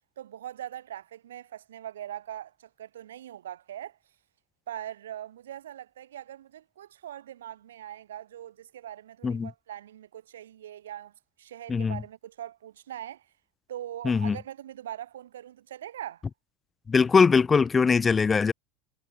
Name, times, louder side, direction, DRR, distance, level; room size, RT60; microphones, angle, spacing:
voice 1, 0.2-4.0 4.7-11.1 11.4-13.3 13.7-16.2, right 11 dB, 85° right, 6.1 m, -41 dB
voice 2, 11.7-12.0 14.0-14.4 16.9-18.5, left 5 dB, 25° left, 0.5 m, -21 dB
hypercardioid pair, 90°, 0 cm